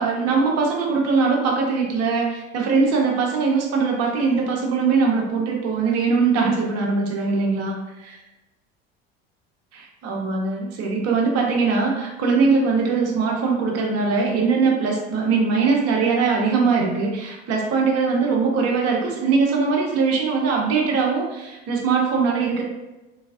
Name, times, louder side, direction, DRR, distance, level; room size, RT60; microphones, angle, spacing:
voice 1, 0.0-8.2 9.7-22.6, right 4 dB, 55° right, 0 dB, 1.1 m, -21 dB
3.7 x 3.5 x 2.6 m, 1.1 s
hypercardioid pair, 75°, 31 cm